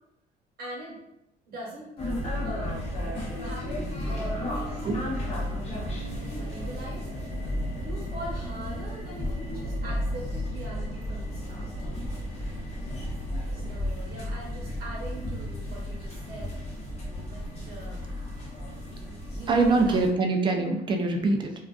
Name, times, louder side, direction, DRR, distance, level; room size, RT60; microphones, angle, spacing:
voice 1, 0.6-1.0 1.5-1.9 2.4-2.8 3.4-3.8 4.1-5.6 6.3-7.1 7.8-11.7 13.5-16.5 17.3-18.0 19.3-20.0, right 1 dB, 65° right, -3 dB, 1.0 m, -41 dB
sound 1, 2.0-20.1, left 1 dB, 40° left, 0.7 m, -33 dB
voice 2, 19.5-21.5, right 3 dB, 30° right, 3 dB, 0.4 m, -23 dB
2.4 x 2.3 x 2.3 m, 0.85 s
cardioid pair, 110°, 17 cm